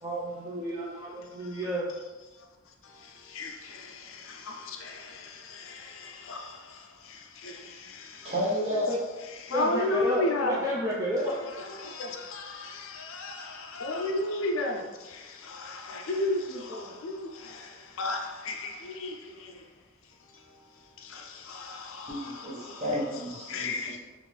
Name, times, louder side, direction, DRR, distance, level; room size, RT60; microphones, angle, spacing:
voice 1, 0.0-1.9 8.9-9.0 9.5-11.3, equal, 15° right, 0.4 m, -31 dB
voice 2, 2.8-8.3 9.3-10.7 11.5-19.6 20.3-20.6 21.0-22.8 23.5-24.0, left 2 dB, 65° left, 0.4 m, -34 dB
voice 3, 8.2-8.9 22.1-23.7, equal, 30° right, 1.0 m, -31 dB
3.5 x 2.5 x 3.2 m
head